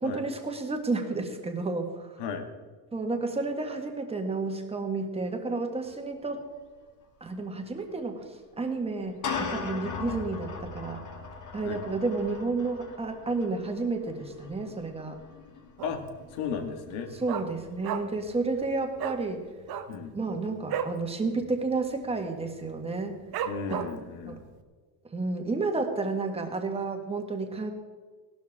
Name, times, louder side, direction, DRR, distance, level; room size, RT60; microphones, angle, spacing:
voice 1, 0.0-2.2 2.9-6.5 7.2-11.0 11.5-15.2 17.2-19.4 20.1-23.2 23.7-23.8 24.2-24.4 25.1-27.7, right 3 dB, 10° right, 4 dB, 1.7 m, -31 dB
sound 1, 5.8-6.0 6.3-6.4 7.8-7.9 8.9-18.0, left 5 dB, 40° left, 1.9 m, -40 dB
Dog, 15.8-16.2 16.5-16.6 16.9-18.3 18.6-18.7 19.0-19.2 19.6-21.0 21.4-21.5 21.8-22.2 22.7-22.8 23.3-24.1 24.6-24.7, right 9 dB, 50° right, 1.1 m, -34 dB
voice 2, 16.3-17.1 19.9-20.1 23.5-24.4, left 6 dB, 75° left, 5 dB, 2.1 m, -34 dB
17.0 x 12.5 x 3.6 m, 1.5 s
cardioid pair, 140°, 48 cm